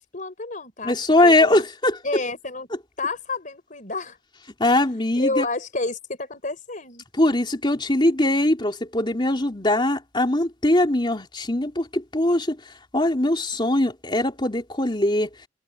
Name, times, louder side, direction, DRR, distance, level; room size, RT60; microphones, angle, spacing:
voice 1, 0.0-1.0 1.2-1.6 2.0-2.7 3.0-4.2 4.6-4.8 5.2-7.0, left 3 dB, 45° left, 3.8 m, -30 dB
voice 2, 0.8-2.2 4.6-5.4 7.1-15.3, left 1 dB, 25° left, 3.3 m, -21 dB
head